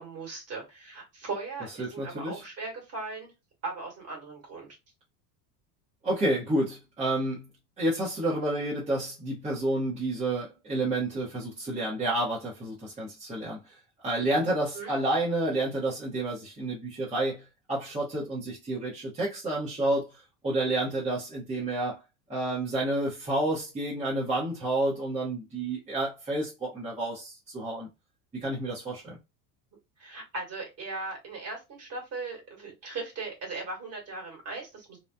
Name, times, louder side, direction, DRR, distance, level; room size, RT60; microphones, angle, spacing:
voice 1, 0.0-3.3 3.6-4.7 14.7-14.9 30.0-35.0, right 3 dB, 35° right, 1.7 m, -38 dB
voice 2, 1.8-2.4 6.0-7.4 7.8-13.7 14.0-17.4 17.7-20.1 20.4-22.0 22.3-27.9 28.3-29.2, right 1 dB, 15° right, 1.0 m, -30 dB
2.9 x 2.3 x 2.2 m
cardioid pair, 140°, 44 cm